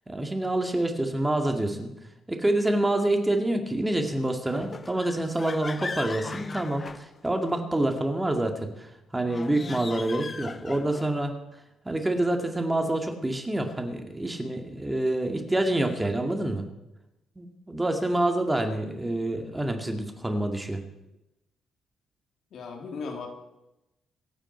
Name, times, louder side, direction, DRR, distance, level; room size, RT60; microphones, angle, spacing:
voice 1, 0.1-1.9 2.3-11.3 11.8-16.7 17.4-20.8, right 1 dB, 15° right, 4 dB, 2.1 m, -27 dB
sound 1, 4.5-7.6 9.2-11.2, left 4 dB, 30° left, 0.7 m, -38 dB
voice 2, 22.5-23.3, left 4 dB, 65° left, 2 dB, 3.0 m, -36 dB
25.5 x 8.9 x 4.5 m, 0.92 s
cardioid pair, 90°, 0 cm